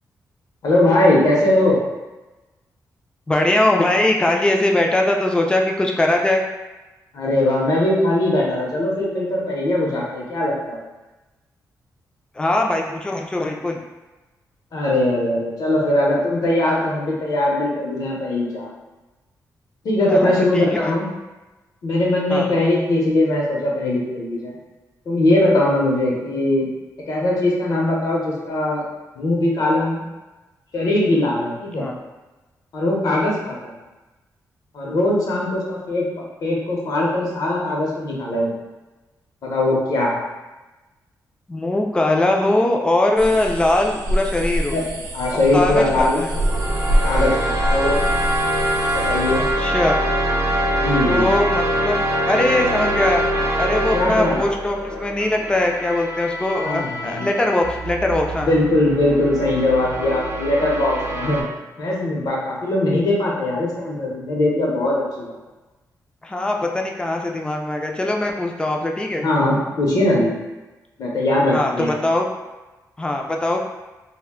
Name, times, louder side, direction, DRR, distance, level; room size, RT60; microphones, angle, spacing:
voice 1, 0.6-1.8 7.1-10.8 14.7-18.7 19.8-21.1 21.8-24.5 25.1-26.7 27.1-28.8 29.2-30.0 30.7-31.8 32.7-33.7 34.7-38.5 39.4-40.2 44.7-44.8 45.1-46.2 47.0-48.0 48.9-49.5 50.8-51.3 53.9-54.4 56.6-57.3 58.4-61.5 61.8-65.4 69.2-70.3 71.0-71.9, left 1 dB, 65° left, -3 dB, 0.8 m, -20 dB
voice 2, 3.3-6.5 12.4-13.8 20.1-21.0 22.3-22.5 31.7-32.0 41.5-44.8 45.5-46.3 49.4-50.0 51.0-52.0 52.3-53.2 53.6-58.5 66.2-69.3 71.5-72.3 73.0-73.6, left 1 dB, 15° left, 1 dB, 0.3 m, -21 dB
sound 1, 43.2-49.5, equal, 90° right, 0.5 m, -25 dB
sound 2, 46.3-61.4, right 1 dB, 45° right, 0.7 m, -24 dB
2.5 x 2.2 x 3.6 m, 1.1 s
wide cardioid pair, 125°, 7 cm